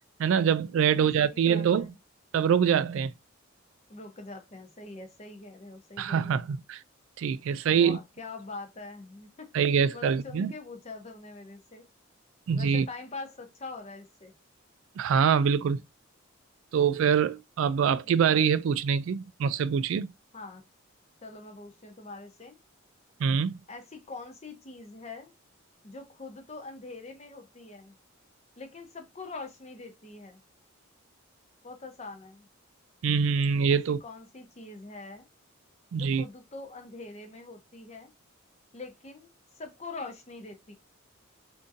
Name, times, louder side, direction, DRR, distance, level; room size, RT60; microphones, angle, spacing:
voice 1, 0.2-1.9 2.3-3.1 6.0-6.8 7.2-8.0 9.5-10.5 12.5-12.9 15.0-15.8 16.7-20.1 23.2-23.6 33.0-34.0 35.9-36.2, right 7 dB, 70° right, 0.3 m, -24 dB
voice 2, 0.8-1.9 3.9-6.4 7.7-9.5 9.9-11.9 12.5-14.3 20.3-20.6 21.2-22.6 23.7-25.3 25.8-27.9 28.6-30.4 31.6-32.5 33.7-35.3 35.9-38.1 38.7-40.7, left 3 dB, 30° left, 0.7 m, -44 dB
3.7 x 2.6 x 2.5 m
head